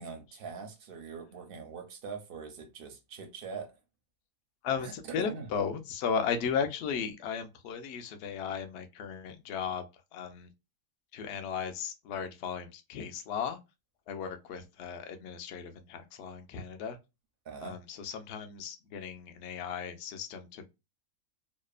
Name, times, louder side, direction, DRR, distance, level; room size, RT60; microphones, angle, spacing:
voice 1, 0.0-3.8 4.8-5.5 17.5-17.8, right 5 dB, 60° right, 0.6 m, -42 dB
voice 2, 4.6-9.8 10.1-10.5 11.1-13.6 14.1-17.0 17.6-20.7, left 6 dB, 70° left, 0.6 m, -35 dB
2.8 x 2.0 x 2.3 m
omnidirectional pair, 1.6 m